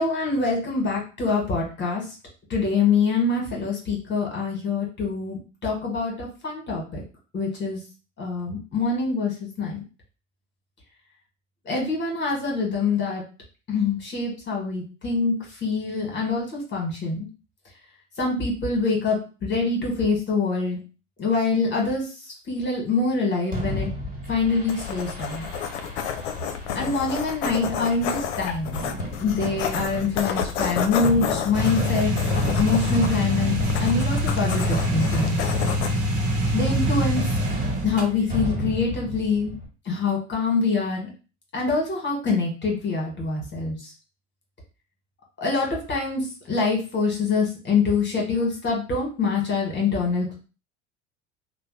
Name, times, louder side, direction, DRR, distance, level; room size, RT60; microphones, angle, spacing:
voice 1, 0.0-2.0 2.5-7.0 7.3-7.8 8.2-9.3 9.6-9.8 11.7-13.2 13.7-15.3 15.6-17.3 18.2-19.2 19.4-20.8 21.2-22.0 22.5-23.9 24.3-25.5 26.7-28.8 29.2-32.1 32.5-35.4 36.5-37.2 37.8-39.5 39.9-41.1 41.5-43.7 45.4-50.4, left 4 dB, 30° left, -1 dB, 1.3 m, -25 dB
Fireworks, 23.5-39.7, equal, 25° right, 1.6 m, -35 dB
sound 1, 24.7-37.4, left 7 dB, 65° left, 0.6 m, -31 dB
sound 2, 31.5-38.0, equal, 40° right, 1.1 m, -25 dB
2.9 x 2.1 x 3.1 m, 0.33 s
hypercardioid pair, 80°, 36 cm